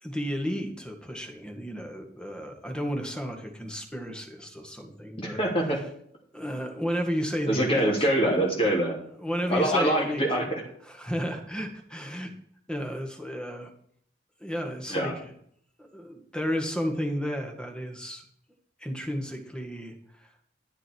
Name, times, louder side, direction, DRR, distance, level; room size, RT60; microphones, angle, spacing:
voice 1, 0.0-5.4 6.3-8.1 9.2-10.2 10.8-12.3 12.7-13.7 14.4-15.3 15.8-18.2 18.8-20.3, equal, 5° left, 3 dB, 2.1 m, -33 dB
voice 2, 5.2-5.8 7.5-9.0 9.5-10.6 14.9-15.1, right 1 dB, 30° left, -2 dB, 3.1 m, -24 dB
14.0 x 10.0 x 4.7 m, 0.66 s
head